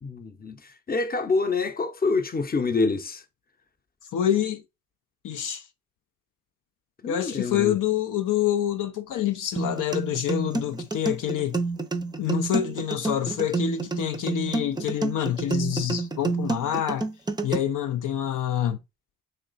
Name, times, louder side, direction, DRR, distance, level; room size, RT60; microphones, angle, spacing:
voice 1, 0.0-3.2 7.0-7.8, left 3 dB, 30° left, 0.7 m, -27 dB
voice 2, 4.1-4.6 5.2-5.6 7.1-11.6 12.2-17.1 17.4-18.8, left 11 dB, 70° left, 0.5 m, -27 dB
sound 1, 9.6-17.6, right 3 dB, 15° right, 0.5 m, -28 dB
3.1 x 2.9 x 3.9 m
cardioid pair, 65°, 32 cm